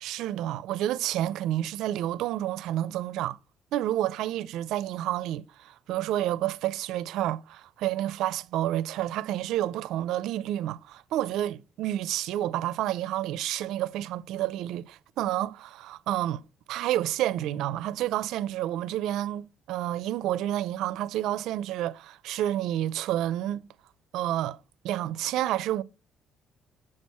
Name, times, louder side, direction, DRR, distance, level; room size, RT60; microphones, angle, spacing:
voice 1, 0.0-3.4 3.7-16.4 16.7-23.6 24.1-24.6 24.8-25.8, right 13 dB, 85° right, 0.5 m, -29 dB
7.5 x 6.4 x 4.3 m
cardioid pair, 145°, 0 cm